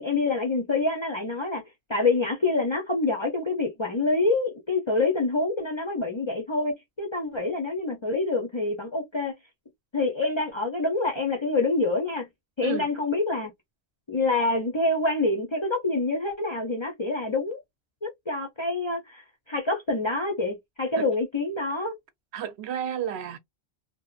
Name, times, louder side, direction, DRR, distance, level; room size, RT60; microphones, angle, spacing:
voice 1, 0.0-1.6 1.9-9.3 9.9-12.3 12.6-13.5 14.1-17.6 18.0-21.9, left 3 dB, 45° left, 0.4 m, -26 dB
voice 2, 22.3-23.4, right 9 dB, 80° right, 0.9 m, -31 dB
2.8 x 2.0 x 2.3 m
omnidirectional pair, 1.1 m